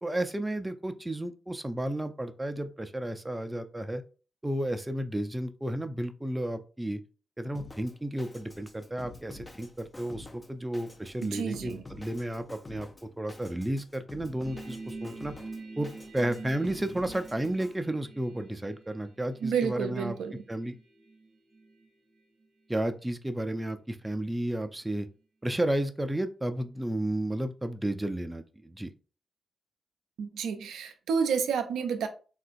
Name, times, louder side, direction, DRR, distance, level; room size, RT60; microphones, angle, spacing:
voice 1, 0.0-4.0 4.4-7.0 7.4-15.3 15.8-20.2 20.5-20.7 22.7-25.1 25.4-28.9, right 1 dB, 15° right, 0.4 m, -32 dB
Drum kit, 7.5-17.8, left 2 dB, 30° left, 0.6 m, -49 dB
voice 2, 11.2-11.8 19.4-20.4 30.2-32.1, right 6 dB, 85° right, 0.4 m, -30 dB
sound 1, 14.4-21.9 22.2-22.4, right 3 dB, 60° right, 0.7 m, -46 dB
3.5 x 2.5 x 2.4 m
supercardioid pair, 45°, 0 cm